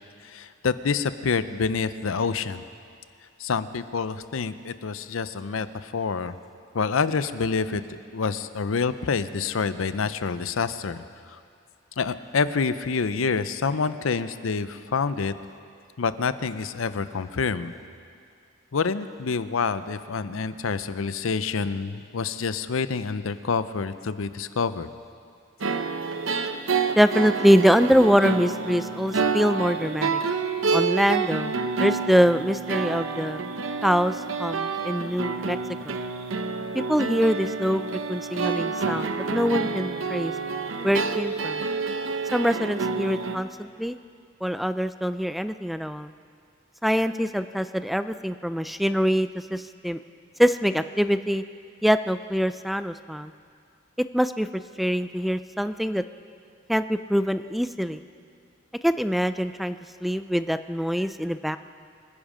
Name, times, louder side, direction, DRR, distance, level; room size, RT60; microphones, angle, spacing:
voice 1, 0.2-2.6 3.4-6.4 6.7-7.8 8.1-11.0 11.3-11.4 12.0-15.3 16.0-17.7 18.7-24.9, left 5 dB, 90° left, 13 dB, 0.6 m, -27 dB
sound 1, 25.6-43.4, right 4 dB, 80° right, 0.8 m, -28 dB
voice 2, 27.0-30.2 30.7-31.5 31.8-33.4 33.8-35.6 35.8-36.0 36.7-37.8 38.1-40.3 40.8-41.6 42.3-44.0 44.4-46.1 46.8-50.0 50.4-51.4 51.8-53.3 54.1-56.0 56.7-58.0 58.8-61.6, equal, ahead, 11 dB, 0.3 m, -24 dB
25.5 x 10.5 x 5.0 m, 2.3 s
head